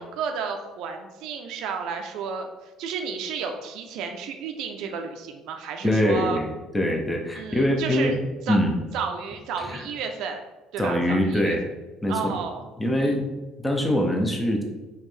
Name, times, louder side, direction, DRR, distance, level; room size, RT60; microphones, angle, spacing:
voice 1, 0.0-2.5 2.8-6.4 7.4-8.1 8.5-8.6 8.9-10.4 10.7-11.6 12.1-12.7 13.0-13.2, right 6 dB, 60° right, 4 dB, 0.5 m, -32 dB
voice 2, 5.8-8.2 8.5-8.7 9.6-9.8 10.8-11.6 12.0-12.4 12.8-13.3 13.6-14.6, left 1 dB, 5° left, 2 dB, 0.5 m, -23 dB
5.4 x 2.9 x 3.2 m, 1.1 s
cardioid pair, 175°, 0 cm